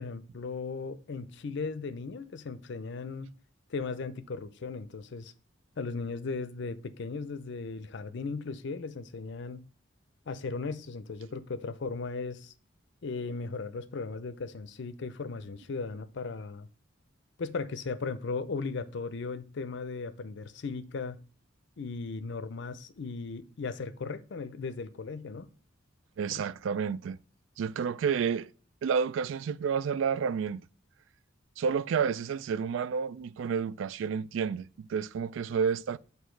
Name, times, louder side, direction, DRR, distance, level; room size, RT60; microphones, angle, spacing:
voice 1, 0.0-3.3 3.7-5.3 5.8-9.6 10.3-12.5 13.0-16.7 17.4-21.2 21.8-25.5 26.3-26.4, left 4 dB, 60° left, 0.5 m, -37 dB
voice 2, 26.2-27.2 27.6-28.5 28.8-30.6 31.6-36.0, right 6 dB, 70° right, 0.3 m, -30 dB
8.3 x 2.8 x 4.4 m
head